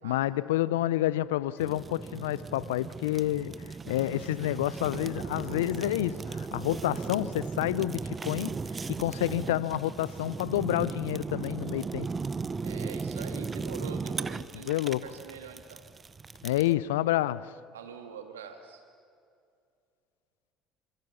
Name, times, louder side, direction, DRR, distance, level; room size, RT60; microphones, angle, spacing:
voice 1, 0.0-8.6 8.9-12.1 14.5-15.0 16.4-17.5, left 15 dB, 80° left, 0.6 m, -29 dB
Fire, 1.6-16.7, right 4 dB, 30° right, 0.9 m, -37 dB
voice 2, 12.6-14.8 15.0-15.8 17.7-18.8, right 7 dB, 85° right, 1.9 m, -44 dB
27.0 x 27.0 x 7.0 m
hypercardioid pair, 60°, 0 cm